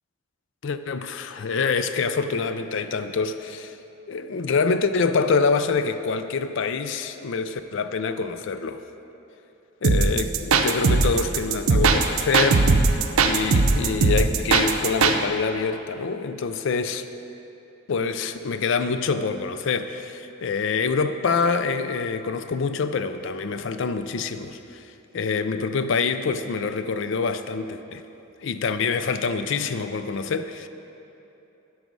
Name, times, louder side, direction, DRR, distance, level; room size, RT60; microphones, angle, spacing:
voice 1, 0.6-3.8 4.1-8.8 9.8-12.7 13.2-17.1 17.9-24.9 25.1-28.0 28.4-30.7, left 5 dB, 60° left, 10 dB, 0.4 m, -26 dB
sound 1, 9.8-15.2, right 4 dB, 85° right, 0.6 m, -19 dB
12.5 x 4.8 x 5.3 m, 2.9 s
head